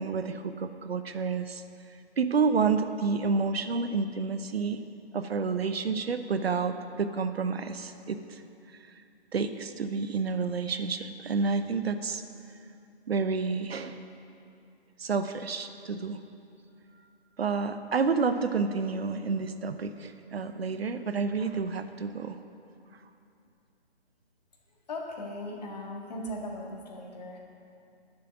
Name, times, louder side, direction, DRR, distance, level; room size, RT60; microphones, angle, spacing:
voice 1, 0.0-1.6 2.2-4.8 5.1-8.4 8.9-9.0 9.3-12.2 13.1-14.0 15.0-16.2 17.4-22.4, right 4 dB, 70° right, 9 dB, 0.8 m, -29 dB
voice 2, 24.9-27.4, left 1 dB, 40° left, -1 dB, 1.9 m, -38 dB
9.8 x 7.5 x 8.8 m, 2.6 s
hypercardioid pair, 165°, 32 cm